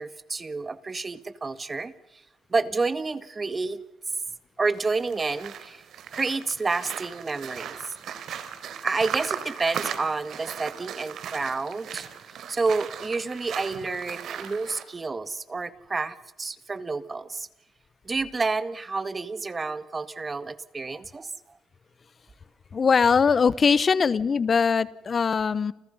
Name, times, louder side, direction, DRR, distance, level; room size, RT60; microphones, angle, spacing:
voice 1, 0.0-1.9 2.5-3.8 4.6-5.8 6.1-7.8 8.8-12.1 12.5-17.5 18.1-21.3, right 3 dB, 30° right, 13 dB, 1.9 m, -29 dB
sound 1, 4.7-14.8, right 8 dB, 70° right, 3.8 m, -37 dB
voice 2, 22.7-25.7, left 5 dB, 40° left, 18 dB, 1.0 m, -21 dB
29.5 x 29.5 x 5.6 m, 0.94 s
cardioid pair, 90°, 0 cm